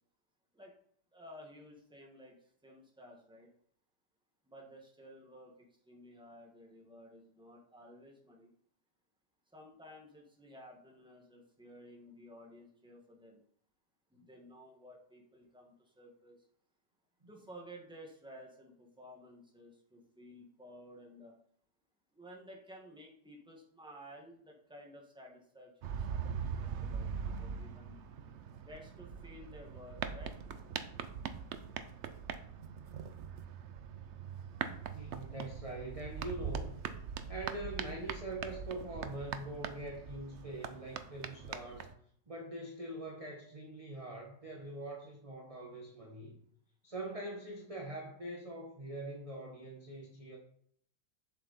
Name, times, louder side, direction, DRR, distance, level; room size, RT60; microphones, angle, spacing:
voice 1, 1.1-3.5 4.5-8.5 9.5-13.4 14.1-16.4 17.3-21.3 22.1-28.0 28.6-30.3 35.3-35.4, equal, 5° right, -1 dB, 1.7 m, -54 dB
sound 1, 25.8-41.9, right 7 dB, 65° right, 0.7 m, -42 dB
voice 2, 34.8-36.8 37.3-41.9 42.3-46.4 46.8-50.4, right 1 dB, 20° right, -1 dB, 1.3 m, -43 dB
7.5 x 7.4 x 4.3 m, 0.63 s
omnidirectional pair, 1.9 m